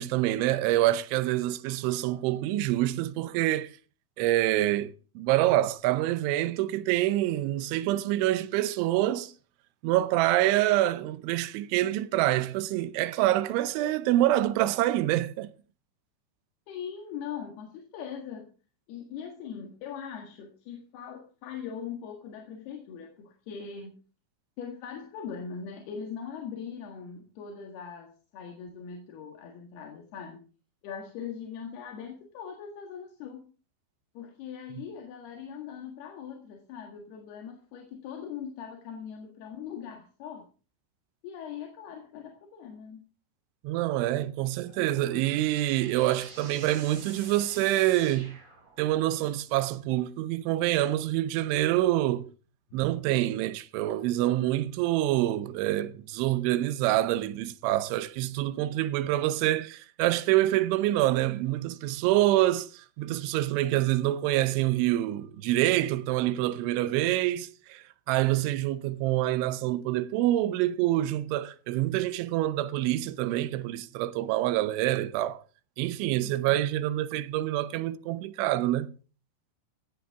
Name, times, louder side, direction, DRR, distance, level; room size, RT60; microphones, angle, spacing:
voice 1, 0.0-3.7 4.2-9.3 9.8-15.5 34.8-34.9 43.6-48.4 48.8-52.3 52.7-75.4 75.8-78.9, right 15 dB, 90° right, 3.2 m, -26 dB
voice 2, 16.7-18.5 18.9-24.0 24.6-30.4 30.8-33.5 34.2-40.5 41.2-43.1 44.7-45.6 52.7-52.8 76.1-76.6, left 7 dB, 65° left, 3.5 m, -41 dB
sound 1, 44.7-49.1, right 3 dB, 35° right, 5.8 m, -48 dB
16.0 x 13.5 x 3.6 m
omnidirectional pair, 5.3 m